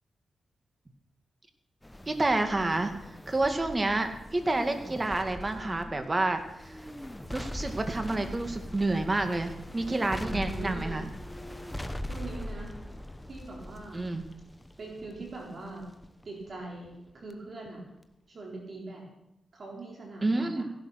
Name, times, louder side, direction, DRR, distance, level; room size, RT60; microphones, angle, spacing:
sound 1, 1.8-17.3 17.7-17.8, left 1 dB, 10° left, 1.1 m, -41 dB
voice 1, 2.1-2.9 3.3-6.7 7.3-11.1 13.9-14.2 20.2-20.6, right 2 dB, 30° right, 7 dB, 2.0 m, -29 dB
voice 2, 10.2-11.0 12.1-12.8 13.3-14.1 14.8-15.8 16.2-17.8 18.3-19.1 19.5-20.6, right 2 dB, 55° right, -1 dB, 4.2 m, -41 dB
15.5 x 11.5 x 5.9 m, 0.87 s
cardioid pair, 70°, 0 cm